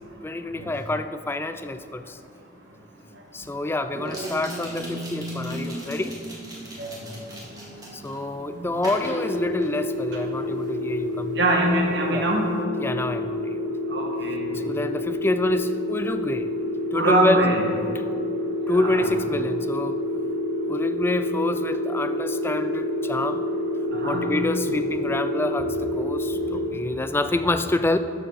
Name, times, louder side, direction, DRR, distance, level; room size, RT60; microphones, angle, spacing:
voice 1, 0.2-2.2 3.3-6.2 7.9-11.4 12.1-12.2 12.8-13.6 14.6-16.5 16.9-17.4 18.7-20.0 20.7-23.4 24.0-28.0, left 2 dB, 10° left, 10 dB, 0.3 m, -27 dB
sound 1, 2.3-2.4 4.0-8.2 8.8-10.1 10.4-10.7, right 1 dB, 20° right, 2.1 m, -41 dB
sound 2, 3.9-12.6, right 1 dB, 45° right, 0.6 m, -39 dB
sound 3, 9.0-26.7, left 1 dB, 70° left, 1.1 m, -28 dB
voice 2, 11.3-12.5 13.9-14.5 16.9-17.6 18.7-19.1 23.9-24.3, right 1 dB, 65° right, 0 dB, 1.7 m, -23 dB
12.0 x 7.2 x 4.1 m, 2.7 s
head